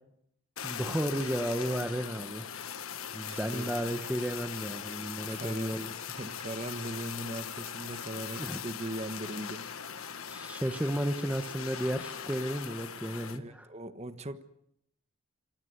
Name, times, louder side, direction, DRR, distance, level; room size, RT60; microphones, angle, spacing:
Fire, 0.6-13.4, left 8 dB, 80° left, 1.4 m, -40 dB
voice 1, 0.6-2.5 3.1-5.9 8.4-8.6 10.3-13.7, equal, 5° right, 8 dB, 1.0 m, -33 dB
voice 2, 3.3-3.7 5.3-5.8 6.2-9.6 13.4-14.4, right 1 dB, 30° right, 10 dB, 1.3 m, -39 dB
27.0 x 16.0 x 9.7 m, 0.78 s
head